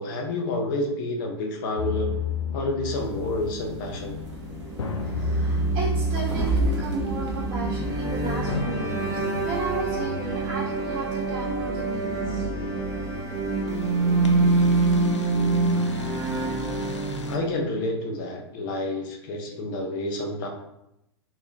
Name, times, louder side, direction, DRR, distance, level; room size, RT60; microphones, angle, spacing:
voice 1, 0.0-2.2 2.5-4.2 17.3-20.5, left 1 dB, 45° left, 2 dB, 0.7 m, -29 dB
sound 1, 1.8-17.4, left 1 dB, 85° left, 0.4 m, -33 dB
sound 2, 2.9-8.4, right 1 dB, 80° right, 0.9 m, -32 dB
sound 3, 4.7-17.7, right 3 dB, 20° right, 0.6 m, -26 dB
voice 2, 5.0-12.5, right 3 dB, 40° right, -8 dB, 1.0 m, -34 dB
4.2 x 2.5 x 2.3 m, 0.83 s
hypercardioid pair, 110°, 15 cm